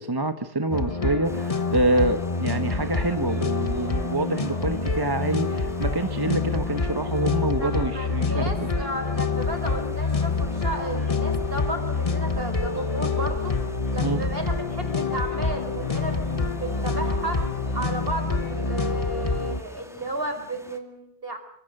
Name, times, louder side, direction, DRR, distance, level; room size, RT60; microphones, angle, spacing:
voice 1, 0.0-8.7 14.0-14.2, right 2 dB, 20° right, 8 dB, 1.1 m, -26 dB
sound 1, 0.7-19.6, left 4 dB, 25° left, 1.1 m, -27 dB
sound 2, 1.2-20.8, equal, ahead, 2.3 m, -48 dB
sound 3, 1.7-18.9, equal, 80° left, 8.0 m, -48 dB
voice 2, 7.6-13.6 13.9-17.5 17.7-21.4, right 2 dB, 40° right, 6 dB, 5.2 m, -33 dB
26.5 x 25.5 x 6.6 m, 0.64 s
omnidirectional pair, 1.4 m